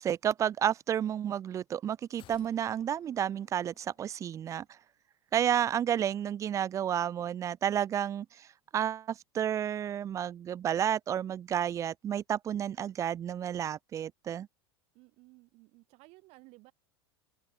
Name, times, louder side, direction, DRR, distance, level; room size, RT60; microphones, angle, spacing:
voice 1, 0.0-4.6 5.3-8.5 8.7-14.5, right 9 dB, 20° right, 0.4 m, -31 dB
sound 1, 2.2-4.5 4.8-4.9, left 14 dB, 35° left, 1.4 m, -61 dB
voice 2, 14.9-16.7, right 24 dB, 45° right, 1.7 m, -57 dB
open air
figure-of-eight pair, 85°, 14 cm